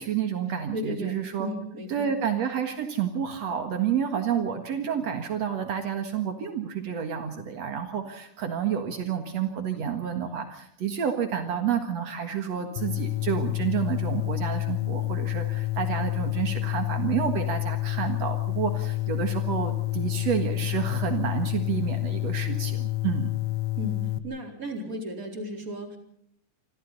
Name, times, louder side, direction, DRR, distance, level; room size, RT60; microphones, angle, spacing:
voice 1, 0.0-1.5 1.9-23.3, right 8 dB, 70° right, 5 dB, 1.5 m, -29 dB
voice 2, 0.7-2.1 23.8-26.0, equal, 20° right, 2 dB, 3.7 m, -35 dB
sound 1, 12.8-24.2, left 19 dB, 80° left, 3.3 m, -29 dB
28.0 x 25.5 x 4.1 m, 0.74 s
omnidirectional pair, 5.8 m